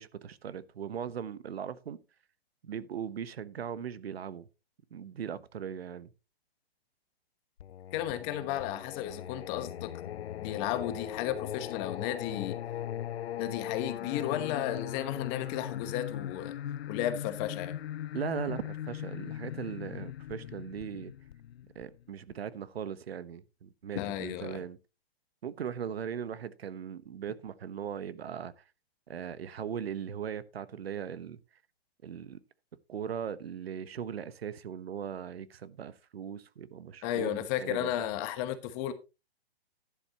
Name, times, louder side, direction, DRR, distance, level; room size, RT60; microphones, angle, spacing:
voice 1, 0.0-2.0 2.6-4.5 4.9-6.1 18.1-21.1 21.7-24.8 25.4-28.6 29.1-31.4 32.0-32.4 32.9-37.9, right 8 dB, 75° right, 1.1 m, -39 dB
Singing, 7.6-22.3, left 11 dB, 80° left, 0.5 m, -39 dB
voice 2, 7.9-9.9 10.4-12.6 13.4-16.6 16.9-17.8 23.9-24.6 37.0-38.9, left 11 dB, 25° left, 1.1 m, -34 dB
11.5 x 11.0 x 2.9 m
hypercardioid pair, 150°, 31 cm